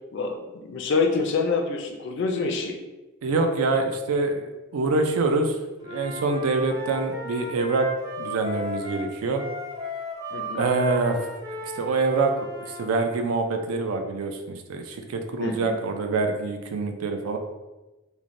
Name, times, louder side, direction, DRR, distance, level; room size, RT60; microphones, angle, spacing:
voice 1, 0.1-2.7 10.3-10.6 15.4-15.7, left 4 dB, 55° left, 4 dB, 0.3 m, -26 dB
voice 2, 3.2-5.6 5.8-7.9 8.2-9.4 10.5-11.3 11.6-17.4, right 3 dB, 85° right, 5 dB, 0.4 m, -25 dB
Wind instrument woodwind instrument, 5.8-12.9, equal, 15° right, 0.4 m, -35 dB
3.1 x 2.1 x 2.5 m, 1.1 s
head